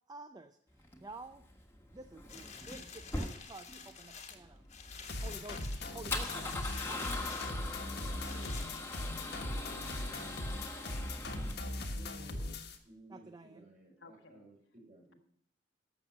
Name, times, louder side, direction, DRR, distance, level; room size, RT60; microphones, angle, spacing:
voice 1, 0.1-1.5 1.9-4.7 5.2-7.1 13.1-13.7, right 2 dB, 20° right, 9 dB, 0.5 m, -51 dB
Male speech man speaking / Car / Engine starting, 0.8-11.9, left 2 dB, 15° left, 1.4 m, -42 dB
sound 1, 2.3-9.4 10.0-10.1, left 5 dB, 35° left, 1.3 m, -50 dB
sound 2, 4.9-12.8, left 1 dB, 60° left, 1.3 m, -39 dB
voice 2, 7.5-8.6 14.0-14.5, left 2 dB, 80° left, 6 dB, 1.3 m, -57 dB
voice 3, 8.0-8.6 8.9-10.2 11.4-12.5 12.8-15.2, right 1 dB, 45° right, -2 dB, 5.0 m, -57 dB
12.0 x 7.3 x 5.9 m, 0.70 s
head